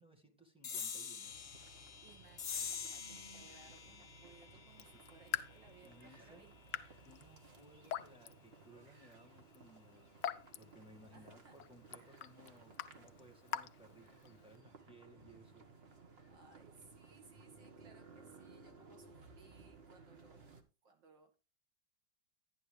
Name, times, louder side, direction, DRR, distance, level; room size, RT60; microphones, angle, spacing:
voice 1, 0.0-1.3 5.8-6.4 7.0-10.2 10.6-15.7, right 1 dB, 5° right, 1 dB, 1.8 m, -61 dB
sound 1, 0.6-7.5, left 7 dB, 40° left, 1.2 m, -47 dB
sound 2, 1.2-20.6, right 4 dB, 35° right, 1.4 m, -60 dB
voice 2, 2.0-6.7 11.1-11.6 16.3-21.4, right 4 dB, 75° right, 3 dB, 2.7 m, -64 dB
Raindrop / Drip, 4.7-14.6, left 11 dB, 70° left, 1.2 m, -47 dB
11.0 x 10.0 x 3.3 m, 0.31 s
omnidirectional pair, 2.0 m